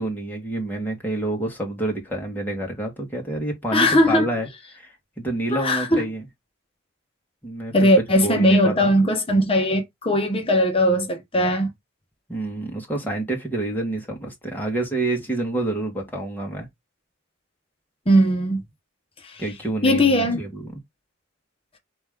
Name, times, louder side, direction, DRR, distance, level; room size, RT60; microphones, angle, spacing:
voice 1, 0.0-4.5 4.7-6.3 7.4-7.9 8.2-8.9 12.3-16.7 19.4-20.8, right 2 dB, 10° left, 1.6 m, -28 dB
voice 2, 3.7-4.3 5.5-6.1 7.7-11.7 18.1-18.6 19.8-20.4, equal, 25° left, 1.1 m, -19 dB
4.6 x 3.1 x 3.7 m
head